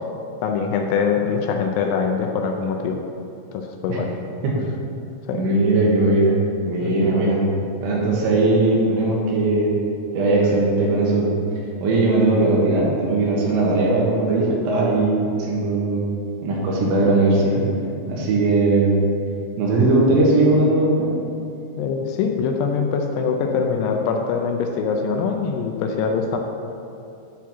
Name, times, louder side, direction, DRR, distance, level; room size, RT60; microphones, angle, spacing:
voice 1, 0.4-3.0 3.5-4.1 5.3-5.4 6.8-7.1 21.8-26.4, left 5 dB, 80° left, 3 dB, 2.6 m, -23 dB
voice 2, 5.3-6.4 6.6-7.4 7.8-9.7 10.1-11.4 11.8-16.1 16.4-17.7 18.1-19.0 19.6-21.1, right 2 dB, 85° right, -4 dB, 3.7 m, -19 dB
9.2 x 4.5 x 6.9 m, 2.7 s
omnidirectional pair, 5.0 m